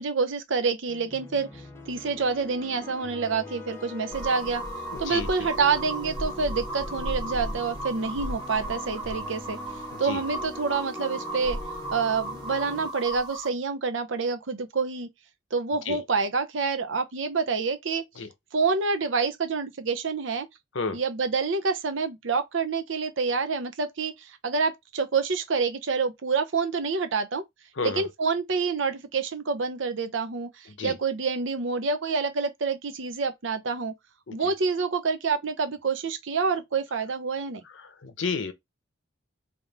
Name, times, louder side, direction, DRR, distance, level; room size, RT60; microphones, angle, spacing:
voice 1, 0.0-4.6 5.0-9.6 10.0-11.6 11.9-15.1 15.5-18.0 18.5-20.5 20.9-27.4 27.8-33.9 34.3-37.6, right 4 dB, 70° right, 0.7 m, -27 dB
sound 1, 0.9-12.9, left 2 dB, 15° left, 0.8 m, -42 dB
sound 2, 4.1-13.5, right 1 dB, 25° right, 1.3 m, -35 dB
voice 2, 38.0-38.5, left 4 dB, 65° left, 0.7 m, -30 dB
3.5 x 2.6 x 3.9 m
head